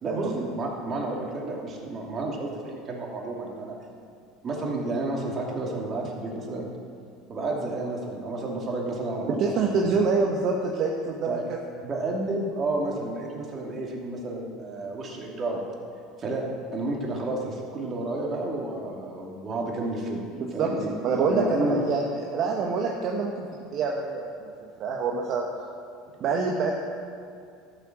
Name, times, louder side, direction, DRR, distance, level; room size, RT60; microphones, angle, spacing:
voice 1, 0.0-3.8 4.4-6.7 7.3-9.4 9.7-10.0 11.3-11.4 11.8-15.6 16.2-16.4 16.7-20.2 20.5-20.9 21.3-21.8, right 2 dB, 35° right, -1 dB, 2.7 m, -31 dB
voice 2, 9.4-11.6 20.3-23.4 23.7-24.5 24.8-25.4 26.2-26.7, right 4 dB, 55° right, 0 dB, 1.2 m, -26 dB
12.5 x 7.6 x 6.3 m, 2.3 s
supercardioid pair, 95°, 0 cm